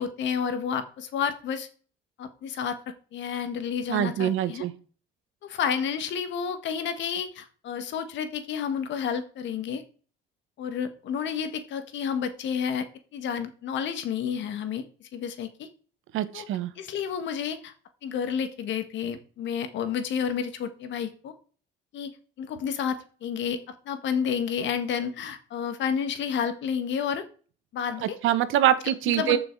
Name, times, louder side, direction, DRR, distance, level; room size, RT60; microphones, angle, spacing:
voice 1, 0.0-1.7 2.2-2.8 3.1-4.7 5.4-9.8 10.6-12.9 13.1-15.7 16.3-16.5 16.8-17.7 18.0-21.3 21.9-22.1 22.4-27.3 27.7-28.2 29.2-29.4, left 7 dB, 65° left, 9 dB, 1.7 m, -30 dB
voice 2, 3.9-4.7 16.1-16.7 28.0-29.4, right 12 dB, 75° right, 13 dB, 1.2 m, -24 dB
14.0 x 6.2 x 4.7 m, 0.40 s
cardioid pair, 165°, 21 cm